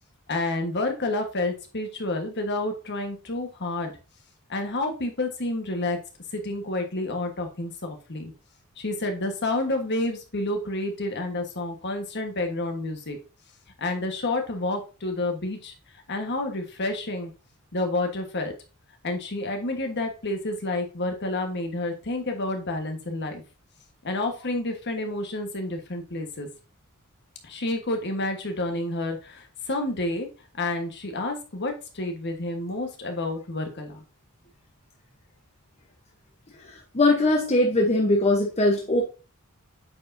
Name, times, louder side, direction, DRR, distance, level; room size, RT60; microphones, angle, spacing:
voice 1, 0.3-3.9 4.5-6.0 6.3-8.3 8.8-13.2 13.8-15.7 16.1-17.3 17.7-18.5 19.0-23.4 24.0-26.5 27.4-30.3 30.5-34.0, left 2 dB, 55° left, 4 dB, 1.4 m, -29 dB
voice 2, 36.7-39.0, left 2 dB, 30° left, 0 dB, 0.9 m, -21 dB
8.6 x 4.8 x 2.7 m, 0.33 s
head